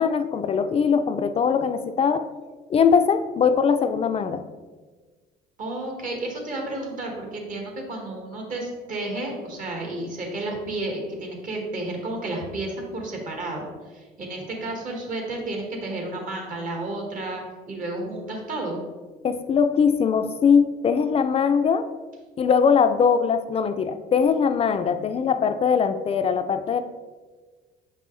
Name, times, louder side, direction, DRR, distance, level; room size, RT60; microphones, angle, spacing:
voice 1, 0.0-2.2 2.7-4.4 19.2-21.9 22.4-26.8, left 6 dB, 35° left, 9 dB, 0.4 m, -21 dB
voice 2, 5.6-18.8, right 2 dB, 55° right, 1 dB, 1.7 m, -32 dB
6.6 x 5.3 x 3.2 m, 1.4 s
cardioid pair, 110°, 17 cm